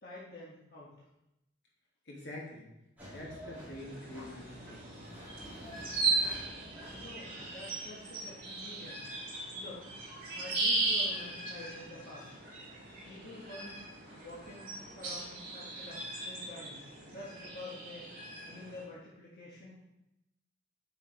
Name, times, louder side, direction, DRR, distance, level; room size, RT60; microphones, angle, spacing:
voice 1, 0.0-1.0 6.9-9.0 9.6-9.9 10.3-12.3 13.0-13.8 14.1-14.7 14.9-19.8, left 2 dB, 55° left, -6 dB, 1.5 m, -48 dB
voice 2, 2.1-2.7 3.1-5.2, left 1 dB, 70° left, -2 dB, 1.9 m, -46 dB
sound 1, 3.0-17.5, equal, 10° right, 2.8 m, -54 dB
sound 2, 3.8-18.8, right 3 dB, 50° right, 2.8 m, -37 dB
7.3 x 4.8 x 4.7 m, 0.88 s
head